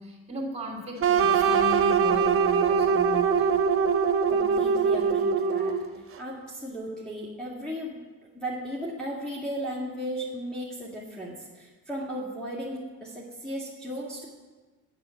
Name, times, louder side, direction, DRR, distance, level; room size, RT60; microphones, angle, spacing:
voice 1, 0.0-3.5, equal, 20° right, 0 dB, 2.8 m, -36 dB
sound 1, 1.0-6.0, right 6 dB, 45° right, 0.8 m, -23 dB
voice 2, 4.3-5.7 6.2-8.0 8.3-14.3, equal, 5° left, -7 dB, 1.9 m, -35 dB
7.7 x 7.1 x 7.8 m, 1.4 s
cardioid pair, 90°, 30 cm